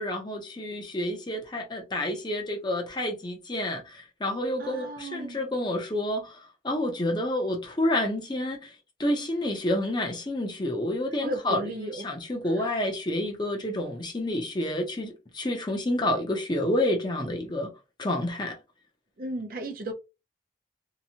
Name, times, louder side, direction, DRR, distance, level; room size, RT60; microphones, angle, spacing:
voice 1, 0.0-6.4 6.6-8.7 9.0-17.7 18.0-18.6, left 1 dB, 25° left, 0.6 m, -29 dB
voice 2, 4.6-5.4 11.2-12.0 12.6-12.7 19.2-19.9, right 1 dB, 50° right, 0.4 m, -34 dB
2.8 x 2.2 x 2.7 m
head